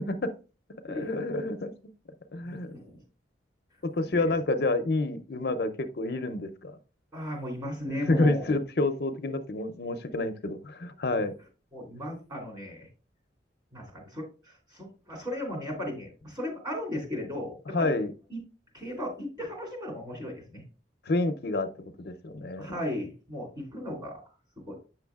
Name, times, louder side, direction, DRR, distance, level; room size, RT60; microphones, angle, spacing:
voice 1, 0.8-1.7 2.3-2.8 3.8-6.8 7.9-11.3 17.7-18.1 21.1-21.7 22.0-22.7, left 2 dB, 55° left, 0.5 m, -28 dB
voice 2, 2.4-3.0 4.0-4.3 7.1-8.5 11.7-12.9 13.7-17.9 18.3-18.4 18.7-20.6 22.6-24.2 24.6-24.8, left 1 dB, 20° right, 2.9 m, -36 dB
8.7 x 6.2 x 2.3 m
head